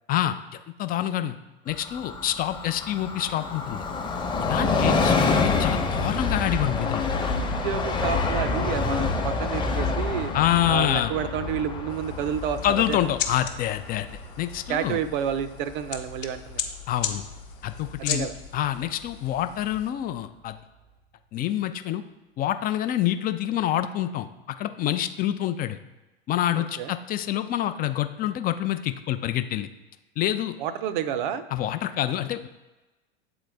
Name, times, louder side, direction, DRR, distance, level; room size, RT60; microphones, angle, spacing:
voice 1, 0.8-1.4 1.7-3.8 4.4-7.0 10.3-11.1 12.6-14.1 14.4-15.0 16.9-17.2 17.6-18.3 18.5-20.5 21.3-22.0 22.4-25.8 26.3-29.7 30.2-30.6 31.5-32.5, left 12 dB, 30° left, 10 dB, 0.4 m, -27 dB
Train, 1.7-15.0 15.3-15.4, left 4 dB, 15° left, 0.8 m, -27 dB
voice 2, 7.6-10.3 10.7-13.0 14.7-16.6 18.0-18.4 26.8-26.9 30.6-31.4, right 9 dB, 60° right, 13 dB, 0.6 m, -29 dB
sound 1, 9.5-20.9, left 4 dB, 90° right, 1.1 m, -42 dB
sound 2, 11.9-19.9, left 9 dB, 70° left, 0.9 m, -37 dB
8.1 x 3.9 x 3.3 m, 1.1 s
hypercardioid pair, 85°, 29 cm